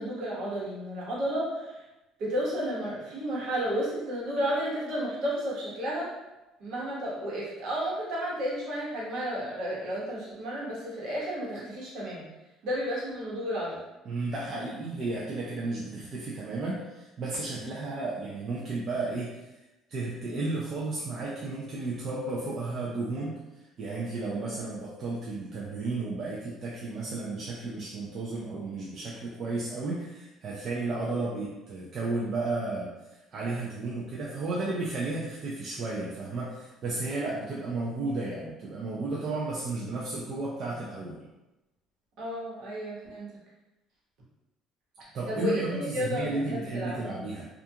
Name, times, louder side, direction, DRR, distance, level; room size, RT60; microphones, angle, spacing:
voice 1, 0.0-1.8 2.2-6.1 6.6-12.2 12.6-13.8 17.6-17.8 24.2-24.4 42.2-43.3 45.3-47.0, equal, 60° right, -6 dB, 1.1 m, -32 dB
voice 2, 14.0-19.5 19.9-41.3 45.0-47.4, right 3 dB, 35° right, -5 dB, 0.4 m, -33 dB
2.4 x 2.3 x 2.7 m, 1.0 s
cardioid pair, 160°, 0 cm